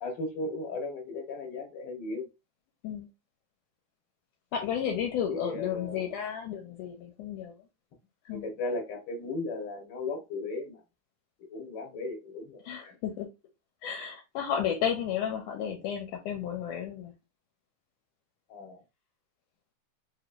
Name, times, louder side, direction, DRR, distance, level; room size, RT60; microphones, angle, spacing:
voice 1, 0.0-2.3 5.3-6.1 8.3-10.8 11.5-12.6 18.5-18.8, left 3 dB, 55° left, 1.7 m, -36 dB
voice 2, 4.5-7.5 8.3-8.5 12.7-13.3 13.8-17.1, left 8 dB, 80° left, 2.0 m, -32 dB
5.0 x 3.1 x 2.5 m
omnidirectional pair, 3.9 m